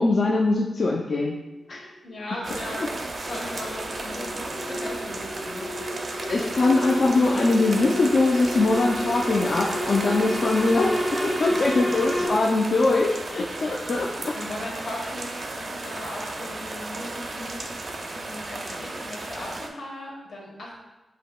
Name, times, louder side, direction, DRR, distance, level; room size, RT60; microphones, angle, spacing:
voice 1, 0.0-1.4 1.7-1.9 6.3-10.9 11.2-14.3, left 3 dB, 45° left, -2 dB, 0.4 m, -22 dB
sound 1, 1.8-12.3, equal, 10° left, 0.7 m, -31 dB
voice 2, 2.0-6.1 11.5-11.6 12.2-12.3 14.3-17.7 18.1-20.7, left 1 dB, 75° left, -4 dB, 1.5 m, -38 dB
sound 2, 2.4-19.7, right 2 dB, 40° right, 0.5 m, -34 dB
7.4 x 2.8 x 2.3 m, 1.1 s
wide cardioid pair, 170°, 0 cm